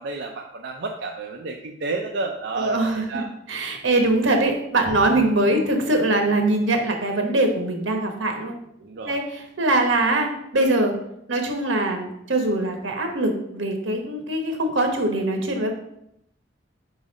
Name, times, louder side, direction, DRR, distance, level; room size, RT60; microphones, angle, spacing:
voice 1, 0.0-3.3 8.8-9.2, right 3 dB, 65° right, 1 dB, 0.5 m, -31 dB
voice 2, 2.6-3.0 3.5-8.6 9.0-11.0 11.3-15.7, right 2 dB, 85° right, 4 dB, 1.1 m, -22 dB
Bowed string instrument, 4.9-8.6, left 1 dB, 25° right, 1.2 m, -42 dB
4.8 x 3.9 x 5.2 m, 0.77 s
head